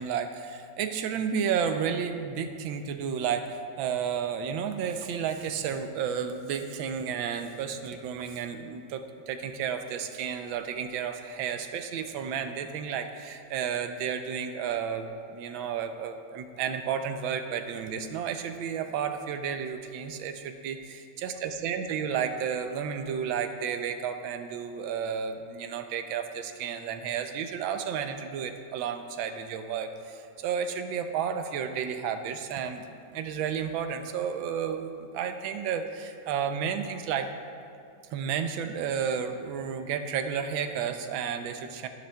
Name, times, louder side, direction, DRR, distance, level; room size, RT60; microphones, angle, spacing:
voice 1, 0.0-20.8 21.2-32.8 33.1-37.3 38.1-41.9, right 7 dB, 85° right, 8 dB, 1.4 m, -32 dB
12.5 x 10.0 x 2.2 m, 2.5 s
omnidirectional pair, 2.1 m